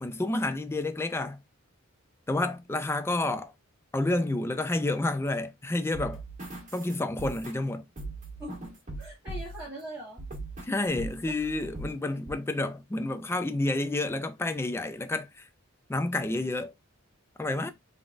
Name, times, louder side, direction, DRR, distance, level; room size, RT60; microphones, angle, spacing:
voice 1, 0.0-1.4 2.3-3.5 3.9-6.2 6.7-7.8 10.6-15.5 15.9-16.7 17.4-17.7, left 2 dB, 10° left, 0.3 m, -29 dB
sound 1, 5.9-9.7 10.2-10.7 11.0-11.9 12.3-12.4, right 2 dB, 35° right, 1.7 m, -40 dB
voice 2, 9.0-10.3, right 1 dB, 5° right, 1.9 m, -42 dB
3.7 x 3.6 x 2.5 m
head